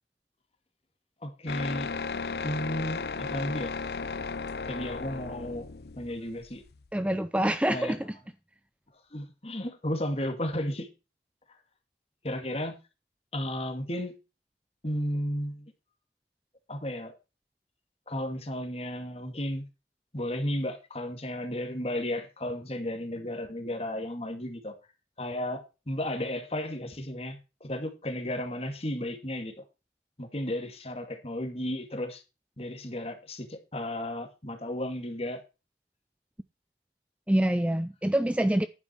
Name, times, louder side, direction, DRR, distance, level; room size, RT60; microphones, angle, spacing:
voice 1, 1.2-1.9 2.4-3.7 4.6-5.7 6.0-6.6 7.7-7.9 9.1-10.9 12.2-12.8 13.3-14.1 14.8-15.7 16.7-17.1 18.1-19.7 20.1-24.8 25.2-29.6 30.2-32.2 32.6-35.4, left 1 dB, 35° left, 2.3 m, -33 dB
sound 1, 1.5-6.9, left 4 dB, 60° left, 0.6 m, -35 dB
voice 2, 6.9-8.1 37.3-38.7, right 1 dB, 5° right, 0.5 m, -26 dB
11.0 x 9.5 x 4.5 m
head